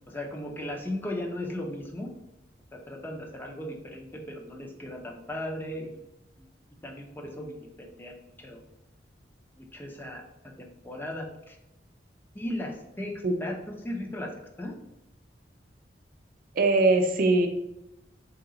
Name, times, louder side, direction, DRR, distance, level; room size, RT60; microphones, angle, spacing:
voice 1, 0.1-2.1 2.7-5.9 6.4-6.5 6.8-8.6 9.6-10.2 10.6-11.6 12.3-13.1 13.4-14.7, left 1 dB, 10° left, 1 dB, 0.4 m, -37 dB
voice 2, 16.5-17.5, right 2 dB, 50° right, 5 dB, 0.4 m, -21 dB
3.1 x 2.9 x 3.7 m, 0.89 s
head